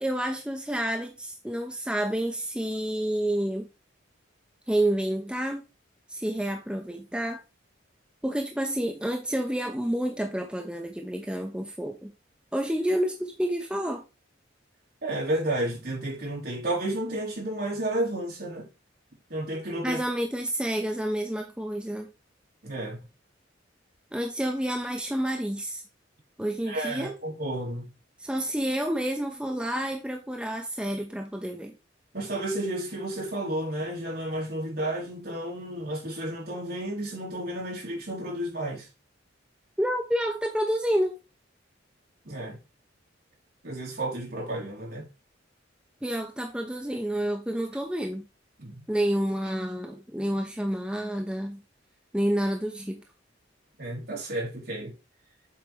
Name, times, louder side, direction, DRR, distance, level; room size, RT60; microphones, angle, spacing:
voice 1, 0.0-3.7 4.7-5.6 6.1-7.4 8.2-12.1 12.5-14.0 19.8-22.1 24.1-25.8 26.4-27.1 28.2-31.7 39.8-41.2 46.0-48.3 48.9-51.6 52.1-53.0, right 1 dB, 5° right, 0.8 m, -29 dB
voice 2, 15.0-18.6 19.3-20.0 22.6-23.0 26.7-27.8 32.1-38.8 42.3-42.6 43.6-45.1 48.6-48.7 53.8-54.9, right 1 dB, 55° right, 3.3 m, -32 dB
7.8 x 4.9 x 3.3 m
head